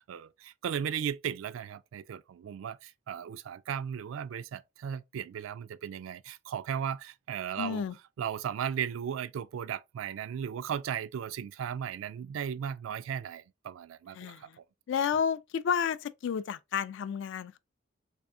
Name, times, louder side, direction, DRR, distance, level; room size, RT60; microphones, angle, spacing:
voice 1, 0.0-7.8 8.2-14.5, right 8 dB, 80° right, 0.3 m, -36 dB
voice 2, 7.6-7.9 14.1-14.6 14.9-17.6, left 7 dB, 65° left, 0.3 m, -31 dB
3.4 x 3.4 x 2.6 m
head